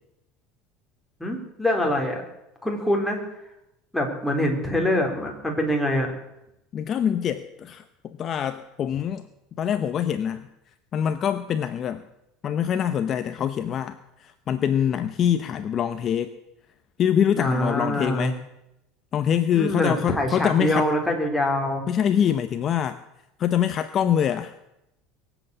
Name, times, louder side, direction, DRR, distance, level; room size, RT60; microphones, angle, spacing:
voice 1, 1.2-2.2 2.6-3.2 3.9-6.1 17.4-18.3 19.5-21.9, left 1 dB, 5° left, 1 dB, 3.6 m, -24 dB
voice 2, 6.7-9.2 9.6-10.5 10.9-12.0 12.4-16.3 17.0-18.4 19.1-20.9 21.9-23.0 23.4-24.5, left 9 dB, 35° left, 10 dB, 0.8 m, -24 dB
21.5 x 8.1 x 8.2 m, 0.85 s
supercardioid pair, 135°, 0 cm